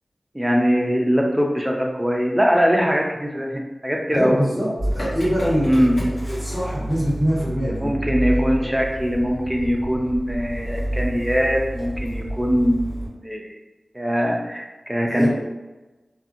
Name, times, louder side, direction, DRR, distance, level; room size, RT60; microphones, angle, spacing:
voice 1, 0.3-4.4 5.6-6.0 7.8-13.6 13.9-15.3, equal, 10° right, 0 dB, 0.5 m, -21 dB
voice 2, 4.1-5.9 6.2-8.0 8.6-8.8 15.1-15.3, equal, 25° left, -10 dB, 1.4 m, -24 dB
Motor vehicle (road) / Engine starting, 4.8-13.1, right 1 dB, 60° left, 1.1 m, -29 dB
2.6 x 2.6 x 2.5 m, 1.1 s
cardioid pair, 45°, 0 cm